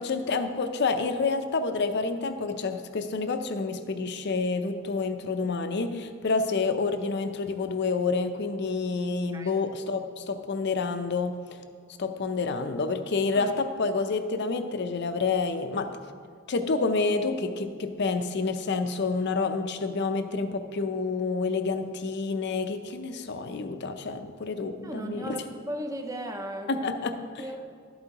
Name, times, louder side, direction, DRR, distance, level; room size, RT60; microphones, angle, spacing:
voice 1, 0.0-11.4 12.0-15.9 16.5-25.4 26.7-27.4, left 4 dB, 50° left, 8 dB, 0.5 m, -28 dB
voice 2, 24.8-26.8 27.4-27.7, right 1 dB, 15° right, 4 dB, 0.6 m, -36 dB
12.0 x 8.0 x 2.9 m, 2.1 s
head